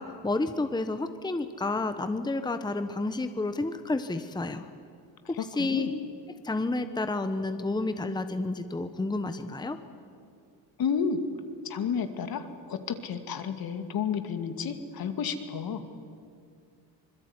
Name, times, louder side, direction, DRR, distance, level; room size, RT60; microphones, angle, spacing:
voice 1, 0.0-4.6 5.3-5.9 6.4-9.8, left 2 dB, 10° left, 9 dB, 1.2 m, -30 dB
voice 2, 5.4-5.9 10.8-11.2 11.6-15.8, left 6 dB, 60° left, 8 dB, 2.5 m, -31 dB
25.5 x 21.0 x 9.8 m, 2.3 s
cardioid pair, 110°, 41 cm